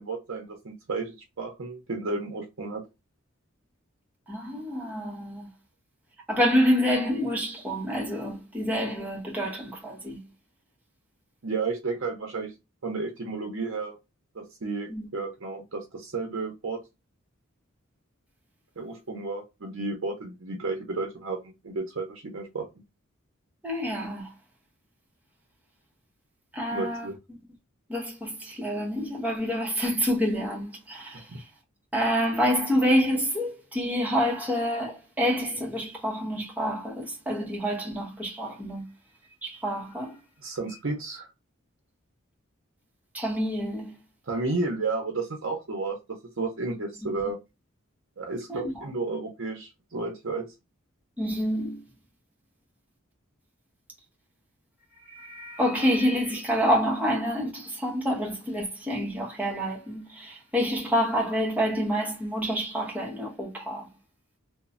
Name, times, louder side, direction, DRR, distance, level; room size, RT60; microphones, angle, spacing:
voice 1, 0.0-2.8 11.4-12.5 12.8-14.0 14.3-16.8 18.8-22.7 26.7-27.2 31.1-31.4 40.4-41.3 44.3-46.0 46.4-47.4 48.2-50.5, right 3 dB, 65° right, 0.6 m, -32 dB
voice 2, 4.3-5.5 6.3-10.3 14.9-15.1 23.6-24.3 26.5-27.1 27.9-31.4 31.9-38.9 39.4-40.2 43.1-43.9 48.5-48.8 51.2-51.8 55.0-63.9, equal, 5° right, 0.8 m, -27 dB
3.0 x 2.1 x 2.5 m
head